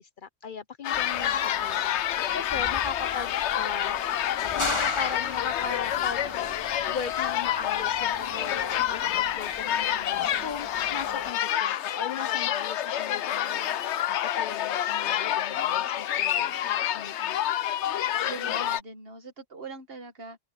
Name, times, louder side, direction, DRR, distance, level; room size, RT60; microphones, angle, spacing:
voice 1, 0.0-2.0 2.3-4.0 4.4-6.4 6.9-16.6 16.9-17.4, left 6 dB, 55° left, 0.8 m, -38 dB
sound 1, 0.8-18.8, left 11 dB, 85° left, 0.9 m, -28 dB
sound 2, 0.9-11.3, left 1 dB, 25° left, 2.1 m, -39 dB
voice 2, 18.2-20.4, right 3 dB, 60° right, 2.0 m, -42 dB
open air
omnidirectional pair, 1.1 m